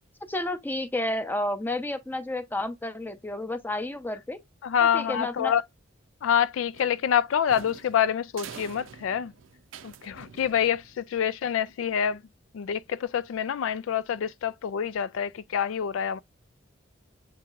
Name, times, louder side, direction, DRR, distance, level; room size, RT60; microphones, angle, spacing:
voice 1, 0.3-4.4 4.8-5.5, left 1 dB, 10° left, 0.6 m, -31 dB
voice 2, 4.6-5.6 6.2-9.3 9.8-12.2 12.5-16.2, left 8 dB, 85° left, 0.3 m, -26 dB
sound 1, 6.7-11.2, right 7 dB, 80° right, 0.5 m, -46 dB
7.2 x 2.8 x 2.5 m
head